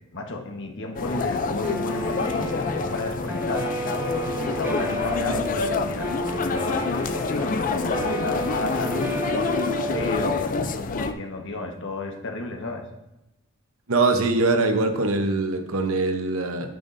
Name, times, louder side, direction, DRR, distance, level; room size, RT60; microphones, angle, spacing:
voice 1, 0.1-3.7 4.4-9.2 9.9-12.9, left 2 dB, 60° left, 2 dB, 1.3 m, -32 dB
sound 1, 1.0-11.1, left 4 dB, 40° left, 0.4 m, -27 dB
Guitar, 1.6-10.3, equal, 10° right, 1.2 m, -31 dB
voice 2, 13.9-16.7, right 3 dB, 75° right, 6 dB, 0.9 m, -22 dB
9.2 x 9.0 x 2.6 m, 0.95 s
head